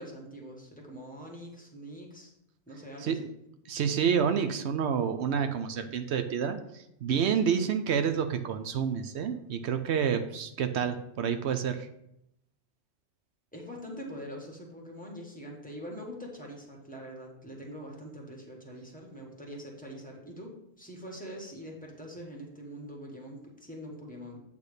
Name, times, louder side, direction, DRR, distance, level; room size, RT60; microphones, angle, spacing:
voice 1, 0.0-2.3 2.7-3.3 7.3-7.6 13.5-24.4, equal, 5° left, -2 dB, 1.5 m, -44 dB
voice 2, 3.7-11.9, right 7 dB, 80° right, 8 dB, 0.9 m, -29 dB
8.3 x 3.4 x 6.6 m, 0.79 s
omnidirectional pair, 1.1 m